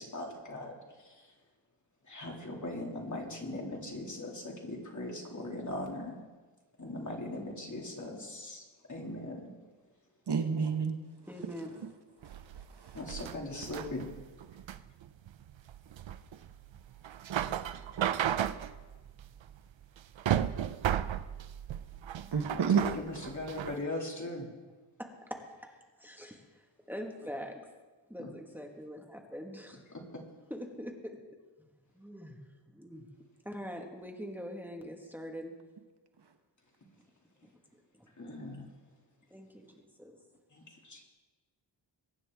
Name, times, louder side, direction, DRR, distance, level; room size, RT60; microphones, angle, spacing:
voice 1, 0.0-1.5 2.0-6.2 6.8-10.2 12.9-14.1 14.5-14.6 22.5-24.5 28.2-28.3 29.9-30.2 36.8-37.0 37.3-37.5 38.1-39.0 40.5-41.0, left 1 dB, 40° left, -1 dB, 2.5 m, -41 dB
voice 2, 10.3-11.0 12.2-13.0 22.3-22.8, right 6 dB, 60° right, 6 dB, 1.2 m, -30 dB
voice 3, 11.2-11.9 25.0-25.7 26.0-27.6 28.1-29.8 30.5-31.2 31.9-32.4 32.7-33.1 33.4-35.5 37.7-38.4 39.3-40.2, equal, 5° right, 1 dB, 1.5 m, -43 dB
sound 1, 12.2-23.8, right 10 dB, 75° right, 0.6 m, -35 dB
22.5 x 9.7 x 3.6 m, 1.3 s
wide cardioid pair, 115°, 46 cm